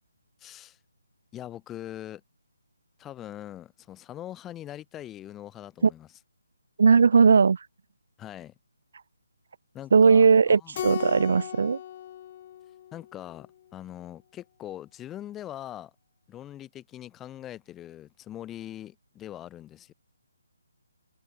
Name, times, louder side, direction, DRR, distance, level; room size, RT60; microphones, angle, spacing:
voice 1, 0.4-0.8 1.3-2.2 3.0-6.1 8.2-8.5 9.7-10.8 12.9-15.9 16.3-19.9, left 12 dB, 10° left, 1.8 m, -42 dB
voice 2, 6.8-7.6 9.9-11.8, right 5 dB, 50° right, 0.7 m, -18 dB
Keyboard (musical), 10.7-13.4, left 11 dB, 25° left, 1.1 m, -37 dB
hypercardioid pair, 175°, 0 cm